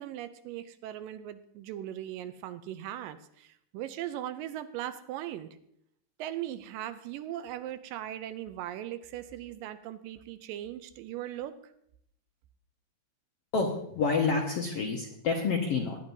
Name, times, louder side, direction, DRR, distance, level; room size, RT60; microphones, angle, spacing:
voice 1, 0.0-5.5 6.2-11.7, right 12 dB, 80° right, 11 dB, 2.2 m, -39 dB
voice 2, 13.5-16.0, left 4 dB, 65° left, 0 dB, 1.5 m, -28 dB
18.5 x 10.5 x 2.7 m, 0.73 s
omnidirectional pair, 4.1 m